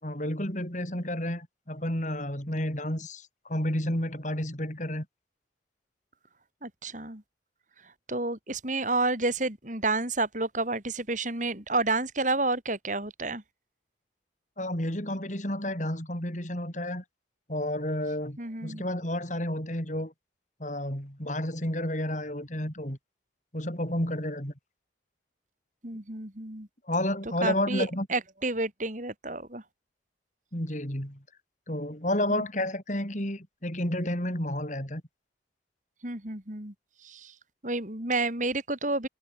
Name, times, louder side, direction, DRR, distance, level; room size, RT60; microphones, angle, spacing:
voice 1, 0.0-5.0 14.6-17.0 17.5-20.1 20.6-23.0 23.5-24.5 26.9-28.1 30.5-31.2 31.7-35.0, left 1 dB, 40° left, 6.2 m, -31 dB
voice 2, 6.6-7.2 7.8-13.4 18.4-18.8 25.8-26.7 27.4-29.6 32.3-32.4 36.0-36.7 37.0-37.3 37.6-39.1, right 2 dB, 40° right, 4.3 m, -30 dB
head